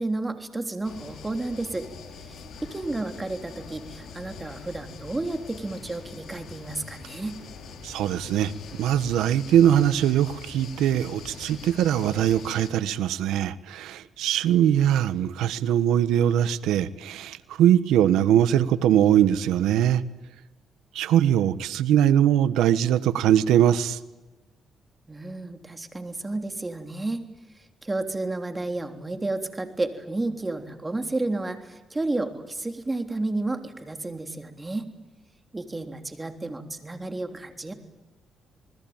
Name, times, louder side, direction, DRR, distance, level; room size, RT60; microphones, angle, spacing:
voice 1, 0.0-1.9 2.3-2.4 2.6-7.4 25.1-27.2 27.8-34.9 35.5-37.7, right 2 dB, 20° right, 6 dB, 3.4 m, -31 dB
sound 1, 0.8-12.7, left 4 dB, 65° left, 5.6 m, -43 dB
voice 2, 7.8-8.5 8.8-20.0 20.9-24.0, right 10 dB, 90° right, 14 dB, 1.2 m, -21 dB
28.0 x 20.5 x 8.9 m, 1.1 s
cardioid pair, 90°, 0 cm